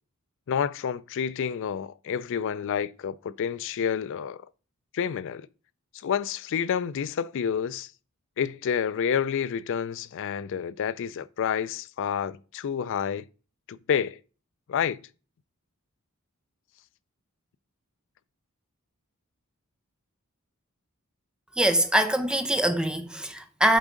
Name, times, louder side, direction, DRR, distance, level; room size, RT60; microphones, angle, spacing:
voice 1, 0.5-4.4 4.9-5.5 6.0-7.9 8.4-13.3 13.7-14.2 14.7-15.0, left 7 dB, 60° left, 0.3 m, -29 dB
voice 2, 21.6-23.8, right 1 dB, 5° right, 0.6 m, -23 dB
7.9 x 3.6 x 5.0 m
head